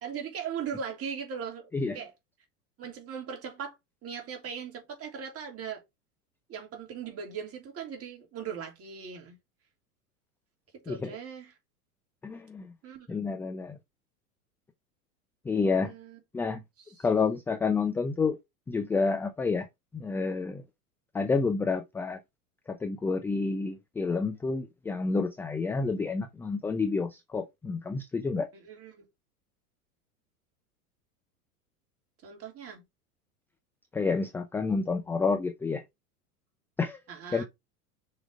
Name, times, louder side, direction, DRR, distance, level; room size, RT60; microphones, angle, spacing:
voice 1, 0.0-2.1 2.8-3.7 4.0-5.8 6.5-9.4 10.8-11.5 12.8-13.3 15.8-16.2 16.8-17.1 28.5-29.0 32.2-32.8 37.1-37.4, right 7 dB, 30° right, 3.3 m, -39 dB
voice 2, 12.2-12.7 13.1-13.8 15.5-15.9 16.3-16.6 17.0-18.4 18.7-19.7 19.9-20.6 21.1-22.2 22.7-28.5 33.9-35.8 36.8-37.0 37.3-37.4, left 4 dB, 5° left, 0.4 m, -29 dB
6.2 x 4.9 x 5.0 m
figure-of-eight pair, 85°, 46 cm